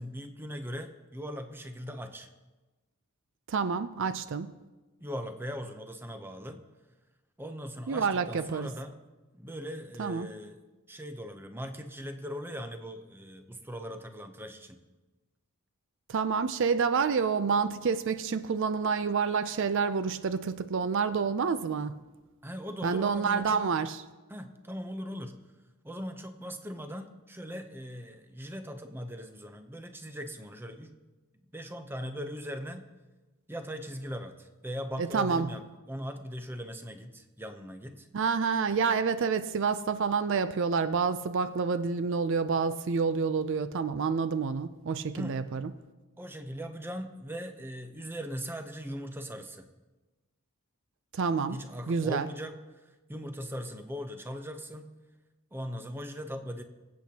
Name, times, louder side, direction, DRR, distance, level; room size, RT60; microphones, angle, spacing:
voice 1, 0.0-2.3 5.0-6.6 7.4-9.0 9.3-10.6 10.9-14.8 22.4-23.7 24.3-25.4 25.8-30.9 31.3-32.9 33.5-38.1 45.2-45.4 46.2-49.7 51.5-52.8 53.1-54.9 55.5-56.6, equal, 10° right, 0.6 m, -39 dB
voice 2, 3.5-4.5 7.9-8.7 10.0-10.3 16.1-22.0 22.8-24.0 35.0-35.5 38.1-45.7 51.1-51.6 51.9-52.3, right 5 dB, 55° right, 0.4 m, -28 dB
22.5 x 8.4 x 2.9 m
head